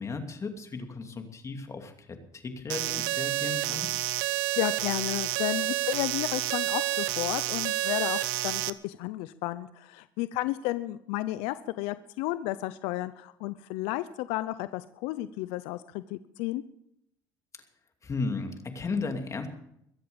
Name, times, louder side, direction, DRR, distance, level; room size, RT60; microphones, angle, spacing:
voice 1, 0.0-4.0 17.5-17.6 18.0-19.5, left 4 dB, 30° left, 5 dB, 2.7 m, -35 dB
sound 1, 2.7-8.7, right 17 dB, 90° right, 0.7 m, -29 dB
voice 2, 4.6-16.6, left 16 dB, 80° left, 13 dB, 0.6 m, -32 dB
22.5 x 7.8 x 7.1 m, 0.77 s
supercardioid pair, 95°, 10 cm